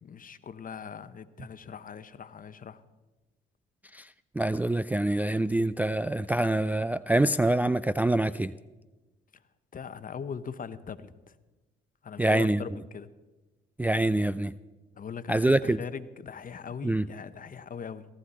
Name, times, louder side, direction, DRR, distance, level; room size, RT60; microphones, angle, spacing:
voice 1, 0.0-2.8 9.7-11.3 12.0-13.1 14.9-18.0, left 6 dB, 40° left, 13 dB, 0.9 m, -40 dB
voice 2, 4.4-8.5 12.2-12.6 13.8-14.5 15.3-15.8 16.8-17.1, right 1 dB, 10° right, 13 dB, 0.4 m, -25 dB
17.5 x 14.0 x 4.2 m, 1.1 s
supercardioid pair, 65°, 21 cm